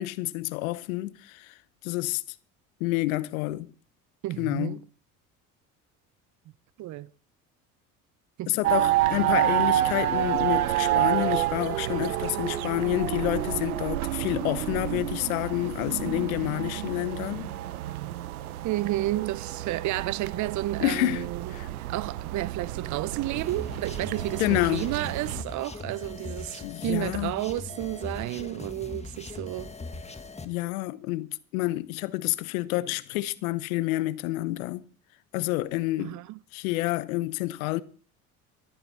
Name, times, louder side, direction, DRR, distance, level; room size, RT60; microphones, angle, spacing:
voice 1, 0.0-1.6 1.8-2.2 2.8-3.7 4.4-4.8 8.5-17.5 20.8-21.7 24.4-24.9 26.6-27.4 30.4-34.8 35.3-36.2 36.5-37.8, left 18 dB, 75° left, 0.9 m, -29 dB
voice 2, 4.2-4.8 6.8-7.1 8.4-8.5 18.6-29.7 36.0-36.4, right 16 dB, 45° right, 0.6 m, -31 dB
sound 1, 8.6-25.4, right 13 dB, 85° right, 0.7 m, -29 dB
sound 2, 23.3-30.4, left 3 dB, 15° left, 1.7 m, -40 dB
15.0 x 11.0 x 4.2 m
hypercardioid pair, 60°, 42 cm